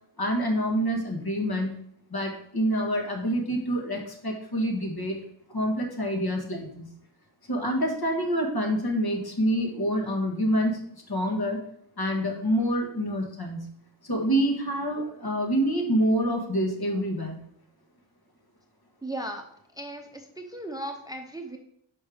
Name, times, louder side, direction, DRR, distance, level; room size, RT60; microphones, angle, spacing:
voice 1, 0.2-1.8 2.1-5.2 5.5-6.9 7.5-11.6 12.0-13.6 14.0-17.4, equal, 50° left, 2 dB, 1.5 m, -27 dB
voice 2, 19.0-19.5 19.7-21.6, right 1 dB, 10° right, 4 dB, 0.7 m, -36 dB
5.3 x 4.6 x 4.9 m, 0.68 s
wide cardioid pair, 60°, 47 cm